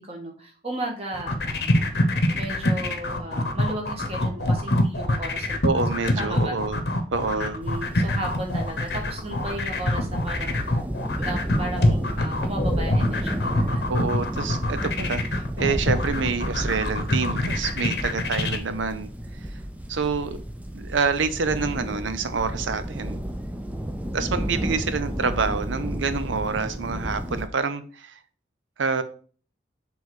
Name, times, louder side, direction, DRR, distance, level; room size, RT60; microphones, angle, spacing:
voice 1, 0.0-2.0 2.3-5.6 6.0-6.6 7.3-10.7 11.2-13.8 24.5-24.8, right 1 dB, 35° right, 1.5 m, -35 dB
sound 1, 1.1-18.6, left 1 dB, 60° left, 0.9 m, -25 dB
voice 2, 5.6-7.6 13.9-19.1 19.9-20.4 20.7-23.2 24.1-28.2 28.8-29.0, right 4 dB, 90° right, 0.7 m, -27 dB
sound 2, 7.6-27.5, equal, 10° right, 0.4 m, -32 dB
6.2 x 3.5 x 4.8 m
head